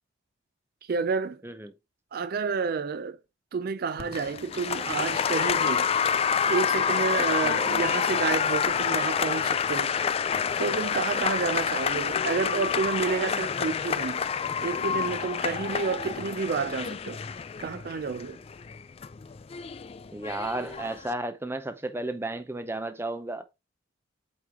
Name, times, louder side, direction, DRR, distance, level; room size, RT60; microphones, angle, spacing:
voice 1, 0.9-1.4 2.1-3.2 3.5-5.9 6.5-9.9 10.6-14.2 14.6-17.2 17.6-18.4, right 5 dB, 50° right, 0.4 m, -30 dB
Applause, 4.0-21.1, left 7 dB, 30° left, 0.3 m, -28 dB
voice 2, 7.4-7.8 20.1-23.4, right 2 dB, 10° right, 0.6 m, -33 dB
8.2 x 3.2 x 3.6 m
head